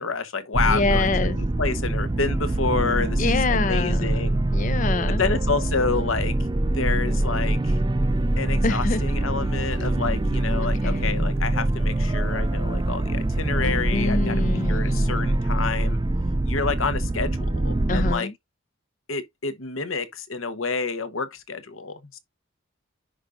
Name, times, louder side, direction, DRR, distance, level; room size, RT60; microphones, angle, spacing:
voice 1, 0.0-4.4 5.2-6.4 6.7-7.8 8.4-16.0 16.4-18.3 19.1-22.2, left 4 dB, 80° left, 1.1 m, -29 dB
sound 1, 0.5-18.1, right 1 dB, 20° right, 0.4 m, -24 dB
voice 2, 0.6-1.4 3.2-5.2 8.6-9.0 10.8-11.3 13.9-15.1 17.9-18.3, left 4 dB, 40° left, 0.5 m, -26 dB
sound 2, 8.1-15.2, equal, 60° left, 4.7 m, -45 dB
10.0 x 5.1 x 2.6 m
head